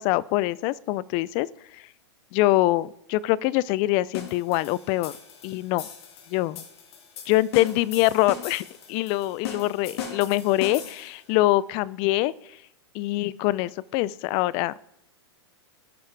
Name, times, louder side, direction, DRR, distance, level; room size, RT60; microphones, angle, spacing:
voice 1, 0.0-1.5 1.7-1.8 2.3-5.1 5.4-5.9 6.3-6.6 7.3-12.3 12.9-14.8, left 17 dB, 40° left, 22 dB, 0.4 m, -24 dB
sound 1, 4.1-11.2, left 8 dB, 60° left, 1.8 m, -39 dB
17.0 x 5.6 x 3.3 m, 0.81 s
hypercardioid pair, 120°, 15 cm